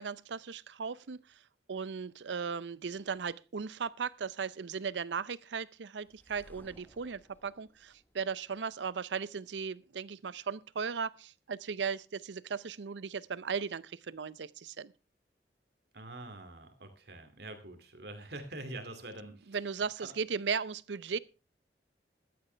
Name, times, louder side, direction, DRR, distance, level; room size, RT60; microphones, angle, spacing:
voice 1, 0.0-1.4 1.7-14.9 19.5-21.2, right 6 dB, 85° right, 0.6 m, -37 dB
sound 1, 6.0-9.0, equal, 10° left, 1.1 m, -60 dB
voice 2, 15.9-19.6 20.0-20.1, right 2 dB, 65° right, 2.4 m, -45 dB
15.0 x 12.0 x 3.3 m
head